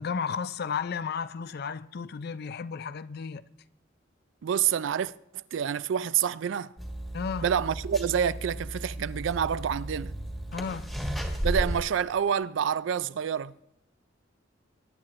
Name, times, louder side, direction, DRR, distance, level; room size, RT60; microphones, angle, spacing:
voice 1, 0.0-3.4 7.1-7.5 10.5-10.9, left 6 dB, 55° left, 0.4 m, -33 dB
voice 2, 4.4-6.7 7.4-10.1 11.4-13.5, right 8 dB, 75° right, 0.4 m, -28 dB
sound 1, 6.8-11.8, equal, ahead, 1.5 m, -34 dB
21.5 x 10.5 x 2.5 m
head